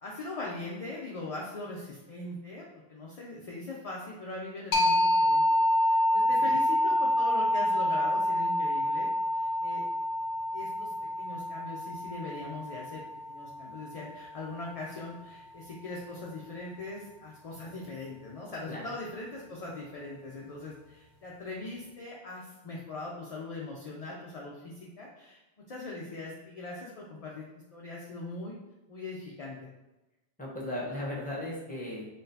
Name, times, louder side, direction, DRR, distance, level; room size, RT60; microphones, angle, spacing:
voice 1, 0.0-9.8 10.5-13.0 13.3-25.4 25.7-27.5 27.7-28.6 28.9-29.6, left 2 dB, 50° left, -3 dB, 0.4 m, -41 dB
sound 1, 4.7-14.1, left 1 dB, 70° left, 0.8 m, -27 dB
voice 2, 30.4-32.1, left 1 dB, 10° left, -4 dB, 0.8 m, -37 dB
3.9 x 3.2 x 2.7 m, 1.0 s
omnidirectional pair, 1.1 m